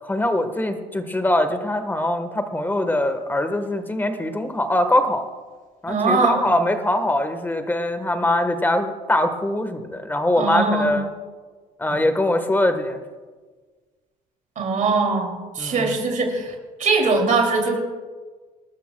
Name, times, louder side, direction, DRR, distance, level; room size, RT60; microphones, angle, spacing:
voice 1, 0.0-5.2 5.8-11.1 11.8-13.0 15.6-16.0, left 1 dB, 10° left, 8 dB, 1.3 m, -22 dB
voice 2, 5.9-6.5 10.4-11.0 14.6-16.5 16.8-17.8, right 4 dB, 50° right, 2 dB, 2.7 m, -21 dB
27.5 x 12.5 x 2.3 m, 1.4 s
cardioid pair, 110°, 17 cm